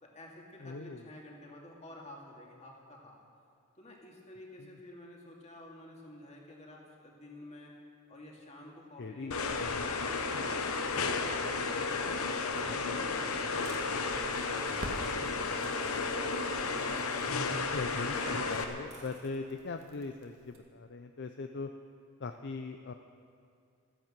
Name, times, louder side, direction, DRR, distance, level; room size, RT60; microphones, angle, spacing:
voice 1, 0.0-3.2 3.8-7.7 8.1-11.5 11.8-12.7 13.0-16.1, left 1 dB, 30° left, -1 dB, 2.3 m, -51 dB
voice 2, 0.6-1.1 4.6-4.7 9.0-9.8 12.7-13.0 17.5-21.7 22.2-22.9, left 4 dB, 55° left, 6 dB, 0.5 m, -40 dB
sound 1, 9.3-18.6, left 4 dB, 80° left, 1.0 m, -33 dB
sound 2, 12.6-16.1 18.1-19.4, right 2 dB, 30° right, 2.0 m, -51 dB
Crackle, 14.0-20.6, right 1 dB, 80° right, 1.7 m, -49 dB
13.5 x 10.5 x 7.6 m, 2.3 s
head